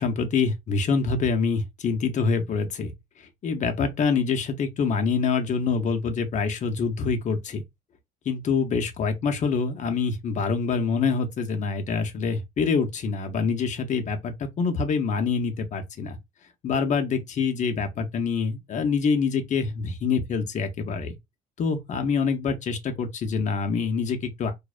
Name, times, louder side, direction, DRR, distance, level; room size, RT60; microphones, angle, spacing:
voice 1, 0.0-2.9 3.4-7.6 8.3-16.2 16.6-21.2 21.6-24.5, left 5 dB, 45° left, 0.7 m, -25 dB
2.5 x 2.0 x 2.4 m
cardioid pair, 110°, 17 cm